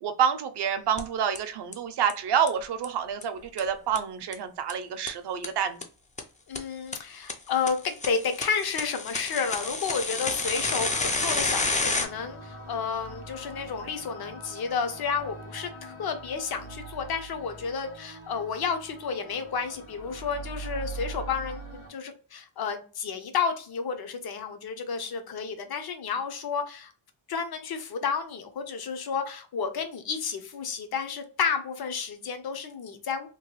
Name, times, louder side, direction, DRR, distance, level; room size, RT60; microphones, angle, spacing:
voice 1, 0.0-5.8, right 8 dB, 60° right, 9 dB, 0.6 m, -28 dB
sound 1, 1.0-1.1 1.4-1.5 1.7-1.8 2.1-2.2 2.5-2.6 2.8-2.9 3.2-3.3 3.6-3.7 4.0-4.1 4.3-4.4 4.7-4.8 5.1-5.2 5.4-5.5 5.8-5.9 6.2-6.3 6.6-6.7 6.9-7.0 7.3-7.4 7.7-12.1, left 3 dB, 20° left, 0.3 m, -29 dB
voice 2, 6.5-26.9 27.3-33.3, left 6 dB, 50° left, 7 dB, 0.7 m, -31 dB
sound 2, 10.3-21.9, right 2 dB, 85° left, 1.4 m, -42 dB
3.0 x 2.2 x 2.9 m, 0.37 s
cardioid pair, 110°, 48 cm